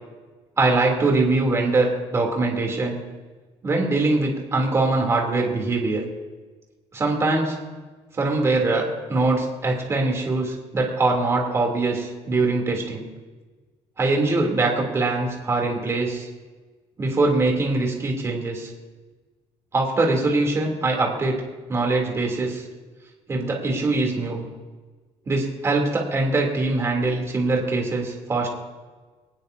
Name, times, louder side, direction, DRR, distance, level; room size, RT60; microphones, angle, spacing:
voice 1, 0.6-3.0 3.6-6.0 6.9-7.6 8.1-13.0 14.0-16.3 17.0-18.7 19.7-21.4 21.7-22.6 23.3-24.4 25.3-28.5, right 3 dB, 25° right, 0 dB, 3.1 m, -22 dB
22.5 x 19.0 x 2.8 m, 1.3 s
cardioid pair, 170°, 12 cm